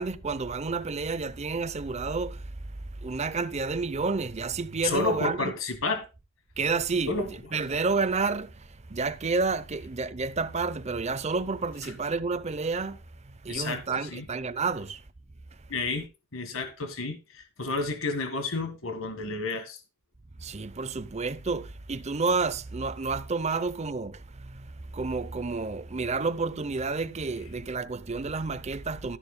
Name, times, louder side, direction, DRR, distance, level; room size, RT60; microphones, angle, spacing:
voice 1, 0.0-2.7 3.0-5.5 6.6-15.0 20.4-29.2, right 4 dB, 30° right, 0.6 m, -30 dB
voice 2, 4.8-6.1 7.1-7.3 11.8-11.9 13.5-13.8 14.1-14.3 15.7-16.1 16.3-19.8, left 3 dB, 70° left, 1.8 m, -30 dB
12.5 x 10.5 x 2.2 m
head